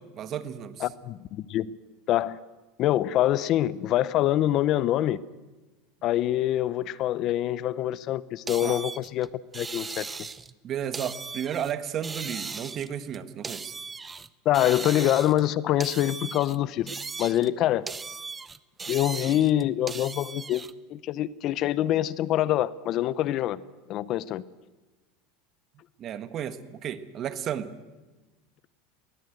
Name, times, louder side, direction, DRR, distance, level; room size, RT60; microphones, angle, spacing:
voice 1, 0.0-0.8 8.6-8.8 10.6-13.7 26.0-27.7, right 9 dB, 40° right, 12 dB, 1.4 m, -33 dB
voice 2, 0.8-1.8 2.1-2.4 2.8-5.2 6.0-9.3 9.5-10.1 14.4-16.9 17.2-17.9 18.9-20.6 20.9-23.6 23.9-24.4, left 13 dB, 50° left, 19 dB, 0.7 m, -25 dB
sound 1, 8.5-10.5 10.9-11.7 12.0-14.3 14.5-15.5 15.8-17.5 17.9-20.7, right 4 dB, 15° right, 0.7 m, -38 dB
20.0 x 19.5 x 8.0 m, 1.2 s
supercardioid pair, 125°, 0 cm